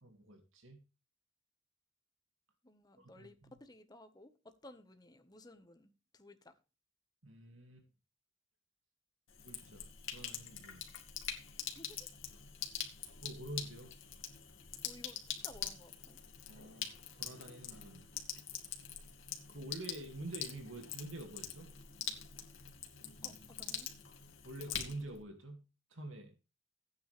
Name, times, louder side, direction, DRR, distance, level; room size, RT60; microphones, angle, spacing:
voice 1, 0.0-0.8 3.0-3.3 7.2-7.8 9.4-10.8 13.2-13.9 16.5-18.1 19.5-21.7 24.4-25.6 25.9-26.3, right 1 dB, 90° right, 2.5 m, -47 dB
voice 2, 2.6-6.6 11.7-12.1 14.8-16.2 23.2-23.9, left 1 dB, 20° left, 1.4 m, -57 dB
Sink (filling or washing), 9.3-25.2, left 9 dB, 80° left, 2.3 m, -45 dB
15.0 x 9.3 x 3.5 m
head